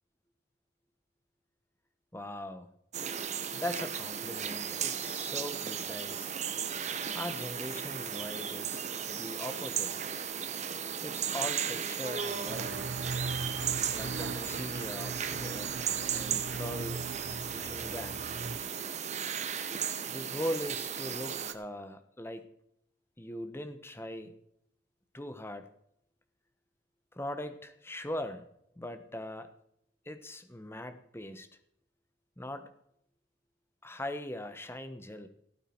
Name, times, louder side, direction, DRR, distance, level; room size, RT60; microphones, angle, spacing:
voice 1, 2.1-2.7 3.5-6.4 7.1-9.9 11.0-12.9 13.9-17.0 17.5-18.3 20.1-22.4 23.2-24.3 25.1-25.7 27.2-28.4 28.8-29.5 30.1-31.5 32.4-32.7 33.8-35.3, left 1 dB, 15° left, 9 dB, 1.1 m, -40 dB
sound 1, 2.9-21.5, right 8 dB, 40° right, 1.0 m, -35 dB
sound 2, 12.5-18.6, right 3 dB, 75° right, 0.8 m, -40 dB
17.0 x 9.1 x 4.5 m, 0.74 s
head